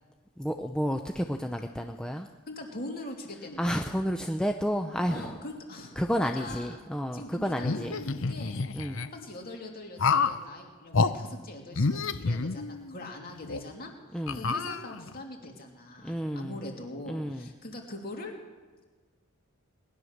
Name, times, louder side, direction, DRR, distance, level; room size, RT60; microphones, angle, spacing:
voice 1, 0.4-2.3 3.6-5.4 6.0-7.9 8.7-9.0 14.1-14.4 16.0-16.6 17.1-17.5, equal, 5° left, 4 dB, 0.5 m, -31 dB
voice 2, 2.5-3.8 5.1-6.9 7.1-8.5 9.1-18.3, left 1 dB, 40° left, 1 dB, 2.6 m, -42 dB
sound 1, 7.6-9.1 10.0-10.4 10.9-11.1 11.7-13.0 13.5-13.6 14.3-15.2, left 4 dB, 60° left, 0.7 m, -28 dB
20.0 x 11.0 x 6.5 m, 1.4 s
head